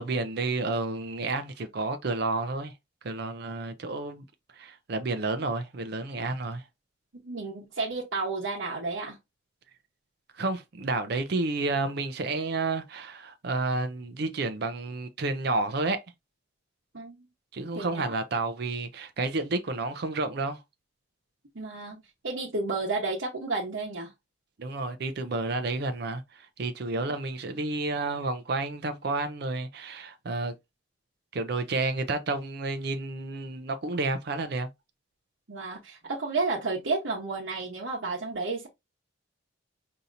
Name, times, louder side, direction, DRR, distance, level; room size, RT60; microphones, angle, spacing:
voice 1, 0.0-2.7 3.0-4.2 4.5-6.6 10.3-16.0 17.5-20.6 24.6-30.6 31.3-34.7, right 3 dB, 55° right, 0.5 m, -30 dB
voice 2, 7.1-9.2 16.9-17.3 17.7-18.1 21.5-24.1 35.5-38.7, right 3 dB, 85° right, 1.0 m, -32 dB
5.2 x 2.8 x 2.5 m
head